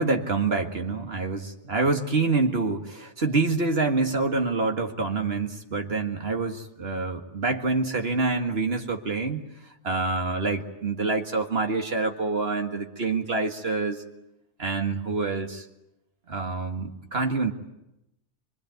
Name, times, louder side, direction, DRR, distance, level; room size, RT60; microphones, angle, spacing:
voice 1, 0.0-9.4 9.8-14.0 14.6-15.6 16.3-17.5, right 3 dB, 60° right, 4 dB, 2.1 m, -26 dB
24.5 x 24.0 x 9.3 m, 0.90 s
omnidirectional pair, 1.2 m